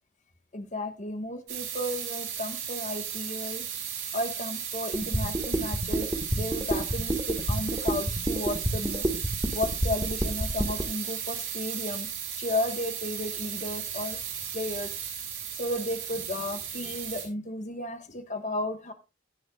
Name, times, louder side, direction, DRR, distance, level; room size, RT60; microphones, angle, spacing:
voice 1, 0.5-3.7 4.1-9.1 9.5-12.1 12.4-14.2 14.5-14.9 15.5-18.9, left 1 dB, 35° left, 7 dB, 1.5 m, -34 dB
sound 1, 1.5-17.2, right 8 dB, 85° right, 6.1 m, -35 dB
sound 2, 4.9-10.8, right 1 dB, 15° right, 1.8 m, -28 dB
17.0 x 9.9 x 2.4 m, 0.27 s
head